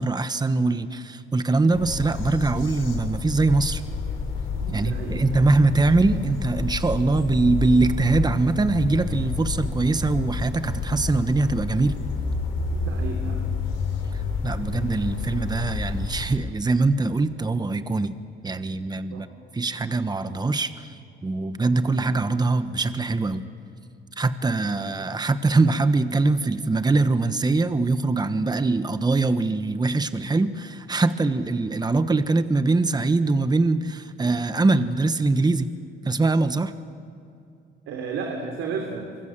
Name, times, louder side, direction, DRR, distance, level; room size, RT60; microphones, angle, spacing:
voice 1, 0.0-3.8 4.7-12.0 14.4-18.2 18.4-19.3 19.5-20.9 21.2-23.5 24.2-35.7 36.1-36.7, right 3 dB, 20° right, 11 dB, 1.2 m, -22 dB
sound 1, 1.7-16.3, left 4 dB, 90° left, 5.0 m, -29 dB
voice 2, 4.5-5.2 12.7-13.5 19.1-19.3 37.9-39.1, right 5 dB, 90° right, 2 dB, 3.2 m, -33 dB
26.0 x 24.5 x 7.5 m, 2.6 s
cardioid pair, 90°, 20 cm